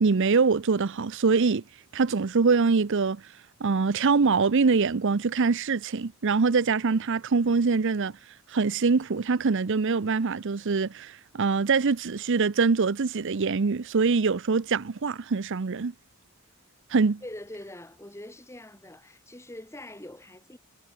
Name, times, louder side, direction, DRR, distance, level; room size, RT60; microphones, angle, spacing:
voice 1, 0.0-1.6 1.9-3.2 3.6-8.1 8.5-15.9 16.9-17.2, right 4 dB, 55° right, 0.6 m, -24 dB
voice 2, 17.2-20.6, left 1 dB, 10° left, 1.7 m, -43 dB
head